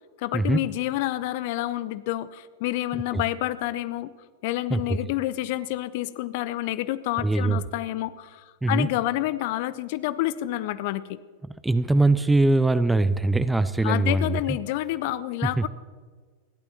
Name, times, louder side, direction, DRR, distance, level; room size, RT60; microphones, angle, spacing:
voice 1, 0.2-4.1 4.4-11.2 13.8-15.7, left 15 dB, 50° left, 17 dB, 0.6 m, -28 dB
voice 2, 7.2-7.6 8.6-8.9 11.6-14.4 15.4-15.7, right 2 dB, 5° right, 14 dB, 0.5 m, -22 dB
28.0 x 12.0 x 3.0 m, 1.5 s
figure-of-eight pair, 90°, 0 cm